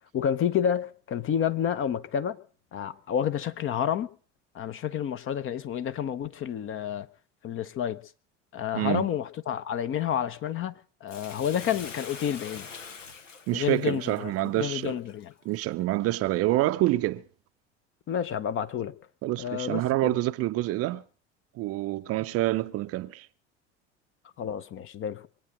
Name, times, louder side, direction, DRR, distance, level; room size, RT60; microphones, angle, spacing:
voice 1, 0.1-2.4 2.7-4.1 4.5-7.1 7.4-8.0 8.5-12.7 13.5-15.3 18.1-18.9 19.4-20.2 24.4-25.3, left 9 dB, 35° left, 0.9 m, -29 dB
voice 2, 8.7-9.1 13.5-15.0 15.4-17.2 19.2-21.0 21.6-23.3, right 16 dB, 40° right, 0.6 m, -27 dB
Bathtub (filling or washing), 11.1-15.6 16.2-16.3, left 5 dB, 80° left, 1.3 m, -44 dB
23.5 x 8.9 x 6.5 m
figure-of-eight pair, 70°, 37 cm